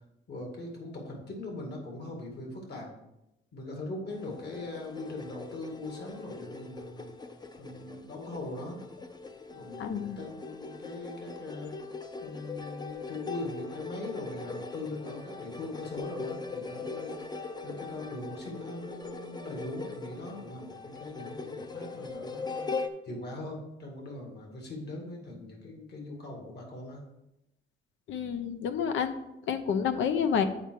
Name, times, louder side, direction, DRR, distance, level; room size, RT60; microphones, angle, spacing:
voice 1, 0.3-2.9 3.5-7.1 7.6-8.8 9.5-11.7 12.2-22.7 23.0-27.0, left 2 dB, 55° left, 1 dB, 2.3 m, -41 dB
sound 1, 4.1-22.9, left 4 dB, 20° left, 0.6 m, -41 dB
voice 2, 9.8-10.2 28.1-29.1 29.5-30.4, left 7 dB, 75° left, 10 dB, 0.7 m, -29 dB
7.8 x 4.6 x 4.7 m, 0.89 s
cardioid pair, 90°, 20 cm